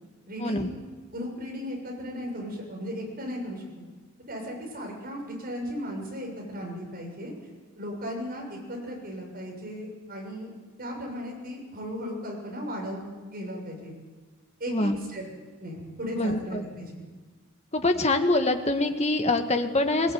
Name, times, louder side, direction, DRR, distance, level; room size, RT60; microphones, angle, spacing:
voice 1, 0.3-0.7 1.1-3.8 4.3-7.3 7.8-10.5 10.8-13.0 13.3-13.9 14.6-15.2 15.6-17.1, equal, 45° right, 0 dB, 7.0 m, -36 dB
voice 2, 14.7-15.0 16.2-16.6 17.7-20.1, left 2 dB, 30° left, 6 dB, 1.7 m, -24 dB
20.5 x 19.5 x 9.5 m, 1.4 s
head